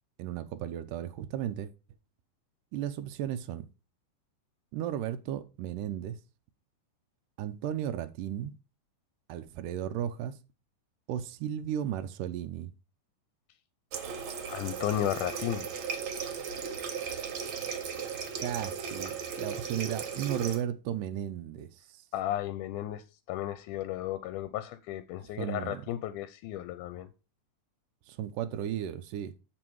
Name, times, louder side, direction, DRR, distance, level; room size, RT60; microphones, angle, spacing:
voice 1, 0.2-1.7 2.7-3.7 4.7-6.2 7.4-8.5 9.3-10.3 11.1-12.7 18.4-22.0 25.2-25.9 28.1-29.3, right 10 dB, 80° right, 2.2 m, -35 dB
Water tap faucet, 13.9-20.6, right 6 dB, 60° right, 1.3 m, -36 dB
voice 2, 14.5-15.7 22.1-27.1, left 13 dB, 80° left, 2.0 m, -34 dB
7.7 x 7.1 x 4.7 m
omnidirectional pair, 3.9 m